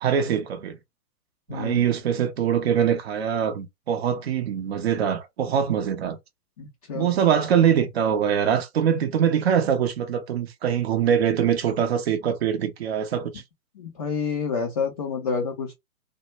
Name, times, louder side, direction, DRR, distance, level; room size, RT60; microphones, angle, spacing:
voice 1, 0.0-0.8 1.5-6.2 6.9-13.4, right 8 dB, 45° right, 0.6 m, -23 dB
voice 2, 1.5-1.9 6.6-7.1 13.8-15.7, left 5 dB, 30° left, 0.4 m, -28 dB
2.2 x 2.0 x 3.0 m
figure-of-eight pair, 120°, 44 cm